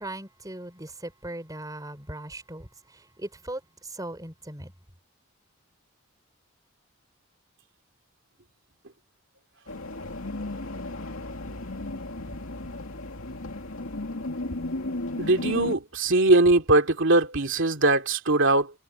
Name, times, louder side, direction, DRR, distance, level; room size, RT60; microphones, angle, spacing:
voice 1, 0.0-4.7, right 1 dB, 15° right, 4.6 m, -39 dB
sound 1, 9.7-15.8, left 2 dB, 80° left, 2.5 m, -34 dB
voice 2, 15.2-18.7, right 2 dB, 60° right, 2.8 m, -21 dB
head